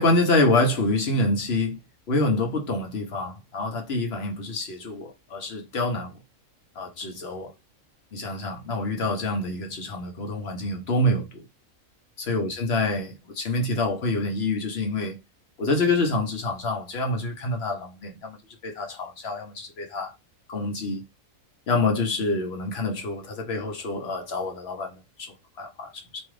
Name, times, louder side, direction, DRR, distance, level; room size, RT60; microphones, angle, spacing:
voice 1, 0.0-1.8 2.1-6.1 6.8-7.5 8.1-11.4 12.2-15.2 15.6-18.4 18.6-20.1 20.5-21.0 21.7-25.3 25.6-26.2, left 2 dB, 55° left, 1.0 m, -26 dB
3.0 x 2.3 x 3.1 m
omnidirectional pair, 1.4 m